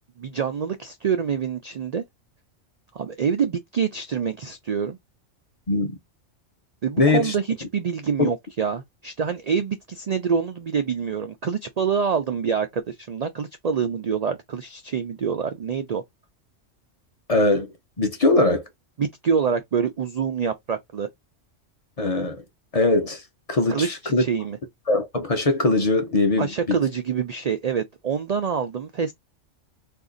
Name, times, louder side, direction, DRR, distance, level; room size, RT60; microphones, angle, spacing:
voice 1, 0.2-2.0 2.9-5.0 6.8-16.0 19.0-21.1 23.7-24.6 26.4-29.1, right 6 dB, 85° right, 0.3 m, -26 dB
voice 2, 5.7-6.0 7.0-7.3 8.2-8.3 17.3-18.6 22.0-22.4 22.7-23.2 23.5-24.2 24.9-26.8, left 2 dB, 40° left, 0.6 m, -21 dB
2.6 x 2.4 x 3.7 m
omnidirectional pair, 1.3 m